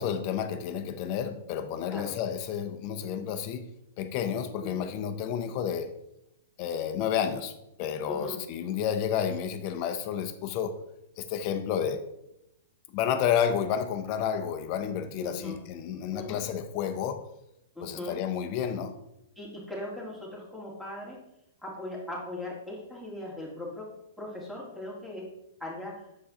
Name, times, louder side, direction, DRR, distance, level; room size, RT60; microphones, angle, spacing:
voice 1, 0.0-3.7 4.0-5.9 6.6-7.5 7.8-10.8 11.2-12.0 12.9-17.2 17.8-18.9, left 8 dB, 45° left, 8 dB, 0.7 m, -30 dB
voice 2, 8.1-8.4 15.2-15.6 16.1-16.4 17.8-18.2 19.4-21.2 21.6-23.9 24.2-25.2 25.6-26.1, left 1 dB, 5° right, -4 dB, 2.2 m, -39 dB
7.0 x 4.7 x 3.7 m, 0.82 s
hypercardioid pair, 110°, 0 cm